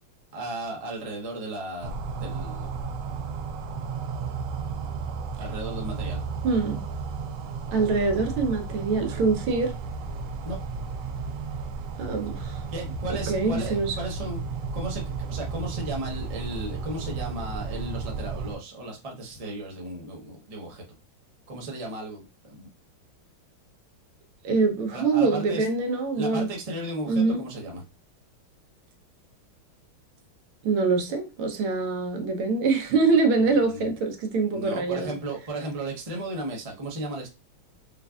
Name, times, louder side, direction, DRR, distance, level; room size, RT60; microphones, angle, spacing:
voice 1, 0.3-2.8 5.4-6.2 10.4-10.6 12.7-14.4 14.7-20.8 21.5-22.7 24.9-25.7 26.1-27.8 33.4-34.0 34.5-37.3, right 1 dB, 50° right, 0.4 m, -35 dB
sound 1, 1.8-18.6, right 5 dB, 70° right, 1.1 m, -33 dB
voice 2, 6.4-6.8 7.7-9.7 12.0-12.6 13.3-14.0 24.4-26.5 27.1-27.4 30.6-35.1, right 4 dB, 90° right, 1.6 m, -24 dB
5.1 x 2.5 x 2.3 m
omnidirectional pair, 2.2 m